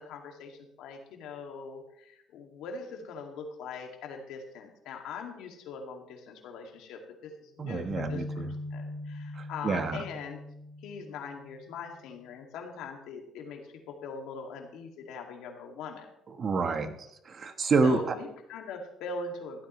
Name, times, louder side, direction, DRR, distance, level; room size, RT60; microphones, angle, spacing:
voice 1, 0.0-8.2 8.7-10.4 10.8-16.1 17.8-19.7, left 4 dB, 85° left, 2 dB, 2.3 m, -41 dB
voice 2, 7.6-8.5 9.4-10.0 16.4-16.9 17.2-18.1, right 4 dB, 45° right, 8 dB, 1.3 m, -28 dB
sound 1, 7.9-11.9, left 2 dB, 50° left, 1.9 m, -41 dB
15.0 x 12.5 x 3.2 m, 0.79 s
cardioid pair, 100°, 0 cm